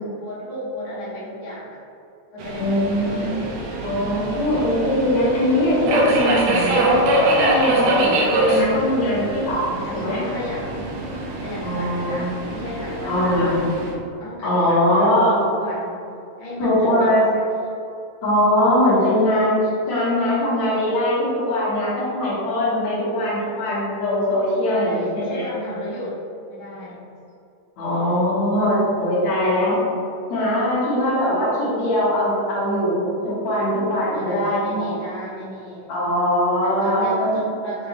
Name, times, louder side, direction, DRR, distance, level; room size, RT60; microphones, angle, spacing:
voice 1, 0.2-1.8 2.3-3.5 9.8-11.0 11.4-13.7 14.2-16.0 16.4-17.5 24.7-26.2 26.5-27.1 34.1-35.9 36.6-37.9, left 1 dB, 90° left, -8 dB, 1.1 m, -33 dB
Subway metro underground, 2.4-13.9, right 1 dB, 85° right, 2.3 m, -24 dB
voice 2, 2.6-3.4 3.8-7.0 7.4-10.2 11.6-12.3 13.1-13.6 14.4-15.4 16.6-17.2 18.2-19.6 19.9-25.4 27.8-29.8 30.3-34.9 35.9-37.4, left 1 dB, 65° left, -12 dB, 2.4 m, -21 dB
6.6 x 2.6 x 2.9 m, 2.6 s
omnidirectional pair, 3.7 m